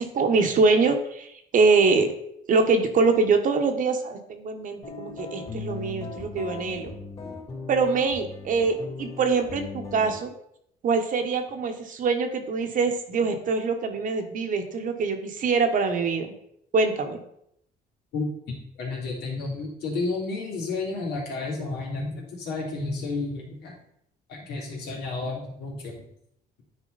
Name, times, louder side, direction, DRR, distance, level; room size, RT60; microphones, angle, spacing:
voice 1, 0.0-2.1 2.5-6.9 7.7-10.3 10.8-16.3 16.7-17.2, right 4 dB, 50° right, 6 dB, 1.2 m, -24 dB
sound 1, 4.8-10.2, left 3 dB, 35° left, 2.9 m, -38 dB
voice 2, 18.8-23.7 24.3-25.9, left 3 dB, 75° left, -2 dB, 3.0 m, -31 dB
10.0 x 4.5 x 4.0 m, 0.74 s
cardioid pair, 110°, 17 cm